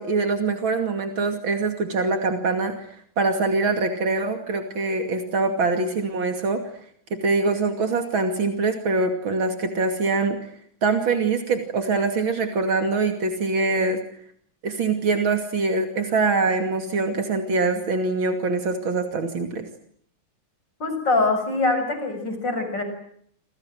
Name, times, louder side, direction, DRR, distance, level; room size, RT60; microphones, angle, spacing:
voice 1, 0.0-2.9 3.2-6.6 7.1-10.5 10.8-14.0 14.6-19.7, right 3 dB, 80° right, 6 dB, 3.4 m, -24 dB
voice 2, 20.8-22.8, left 3 dB, 60° left, 7 dB, 7.5 m, -23 dB
28.0 x 27.5 x 7.8 m, 0.67 s
omnidirectional pair, 2.1 m